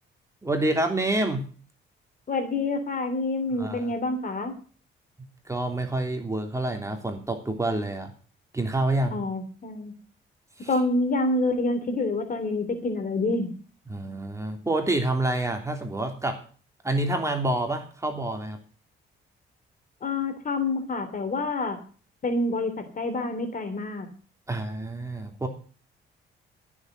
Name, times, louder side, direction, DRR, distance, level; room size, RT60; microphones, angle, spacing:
voice 1, 0.4-1.5 3.6-3.9 5.4-8.1 8.5-9.2 10.6-10.7 13.9-16.4 16.8-18.6 24.5-25.5, right 2 dB, 15° right, 4 dB, 3.2 m, -27 dB
voice 2, 2.3-4.5 9.1-9.9 10.7-13.5 20.0-21.8 22.2-24.1, left 2 dB, 45° left, 8 dB, 3.2 m, -27 dB
14.0 x 7.3 x 7.9 m, 0.39 s
cardioid pair, 90°, 20 cm